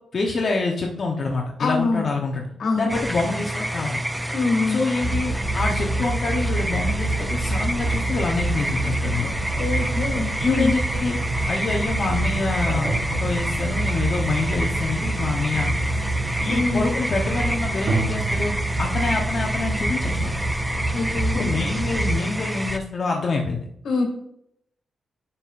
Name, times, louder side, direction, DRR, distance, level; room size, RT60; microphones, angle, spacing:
voice 1, 0.1-2.5 2.7-4.0 4.7-9.3 10.4-11.2 11.5-15.8 16.4-18.5 18.8-20.3 21.3-23.6, left 3 dB, 50° left, 0 dB, 0.9 m, -26 dB
voice 2, 1.6-2.0 2.6-2.9 4.3-4.8 9.6-10.7 16.5-16.8 20.9-21.5 23.8-24.0, left 3 dB, 75° left, 3 dB, 1.8 m, -24 dB
sound 1, 2.9-22.8, right 1 dB, 5° right, 0.4 m, -28 dB
sound 2, 5.0-22.2, right 2 dB, 40° right, 1.3 m, -27 dB
sound 3, 7.5-11.1 12.8-14.0 17.9-18.5, right 4 dB, 65° right, 0.9 m, -32 dB
9.6 x 5.5 x 2.5 m, 0.75 s
cardioid pair, 110°, 0 cm